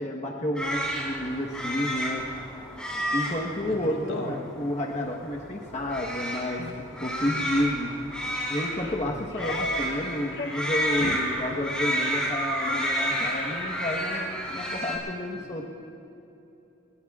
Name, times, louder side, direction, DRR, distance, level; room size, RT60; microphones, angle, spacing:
voice 1, 0.0-2.2 2.9-6.6 7.0-7.9 8.5-15.6, left 1 dB, 35° left, -2 dB, 1.2 m, -30 dB
sound 1, 0.5-15.0, equal, 5° left, 3.7 m, -31 dB
voice 2, 3.7-4.4 9.1-9.3 15.3-15.6, left 1 dB, 85° left, 0 dB, 3.2 m, -38 dB
sound 2, 6.6-6.8 7.3-7.5 8.2-8.4 8.7-10.0 10.3-10.7 10.9-11.2 11.5-11.6 12.0-12.3 12.6-12.9 13.3-13.6, left 2 dB, 60° left, 0.7 m, -38 dB
28.5 x 20.5 x 2.4 m, 2.9 s
head